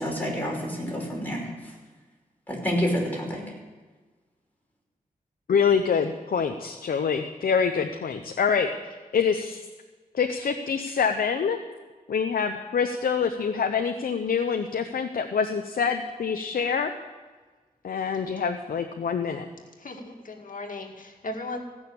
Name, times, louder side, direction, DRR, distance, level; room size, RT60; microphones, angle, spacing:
voice 1, 0.0-1.5 2.5-3.4, equal, 10° left, -2 dB, 5.4 m, -28 dB
voice 2, 5.5-8.7 9.1-9.6 10.1-11.6 12.1-16.9 17.8-19.4, left 6 dB, 80° left, 5 dB, 0.8 m, -25 dB
voice 3, 19.8-21.6, left 2 dB, 65° left, 2 dB, 2.1 m, -37 dB
16.5 x 6.4 x 8.6 m, 1.3 s
cardioid pair, 60°, 15 cm